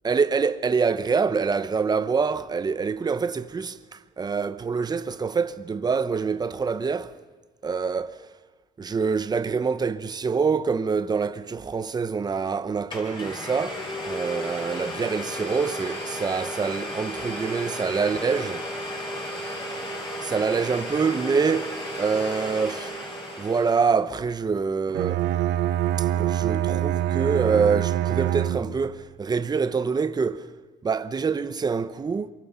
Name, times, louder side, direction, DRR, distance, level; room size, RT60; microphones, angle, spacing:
voice 1, 0.0-7.2 7.6-8.2 8.8-18.7 20.2-22.9 23.4-25.2 26.0-30.5 30.8-32.3, right 5 dB, 25° right, 0.9 m, -26 dB
Domestic sounds home sounds, 12.4-12.5 12.9-24.0, equal, 25° left, 6.4 m, -34 dB
Bowed string instrument, 24.9-29.0, right 12 dB, 80° right, 0.9 m, -25 dB
27.0 x 23.5 x 5.8 m
cardioid pair, 110°, 17 cm